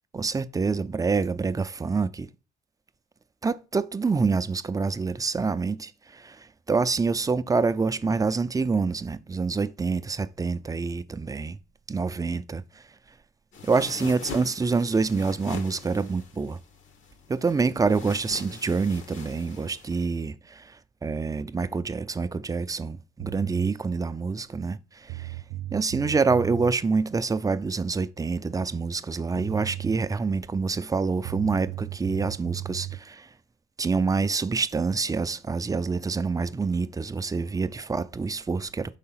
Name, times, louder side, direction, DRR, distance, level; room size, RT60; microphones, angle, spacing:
voice 1, 0.1-2.3 3.4-11.6 11.9-12.6 13.6-16.6 17.3-20.7 21.0-25.4 25.7-33.3 33.8-39.0, right 4 dB, 20° right, 0.4 m, -26 dB
sound 1, 13.5-20.2, left 5 dB, 75° left, 1.2 m, -42 dB
sound 2, 23.2-23.7 24.7-24.8 25.1-26.8 29.0-29.1 29.3-30.0 31.2-33.0, right 15 dB, 85° right, 0.4 m, -35 dB
5.6 x 3.9 x 5.6 m
cardioid pair, 90°, 20 cm